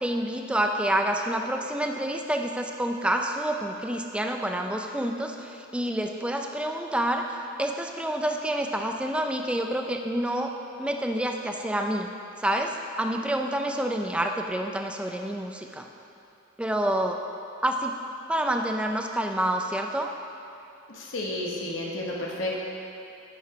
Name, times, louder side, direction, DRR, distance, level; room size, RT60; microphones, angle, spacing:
voice 1, 0.0-10.5 10.8-12.1 12.4-15.9 16.6-17.2 17.6-17.9 18.3-20.1, right 1 dB, 5° right, 3 dB, 0.3 m, -28 dB
voice 2, 20.9-22.6, left 1 dB, 75° left, -3 dB, 0.9 m, -31 dB
9.6 x 4.6 x 3.7 m, 2.7 s
head